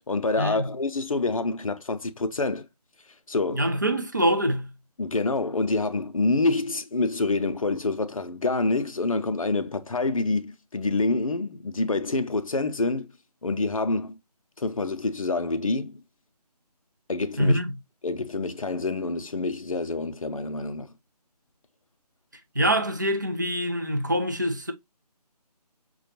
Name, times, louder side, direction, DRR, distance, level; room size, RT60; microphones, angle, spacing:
voice 1, 0.1-2.7 3.3-3.7 5.0-13.1 13.4-14.2 14.6-16.0 17.1-17.6 18.0-20.9, left 3 dB, 55° left, 0.6 m, -27 dB
voice 2, 3.5-4.7 17.4-17.7 22.5-24.7, equal, 30° right, 0.4 m, -24 dB
6.1 x 2.3 x 2.8 m
figure-of-eight pair, 160°, 21 cm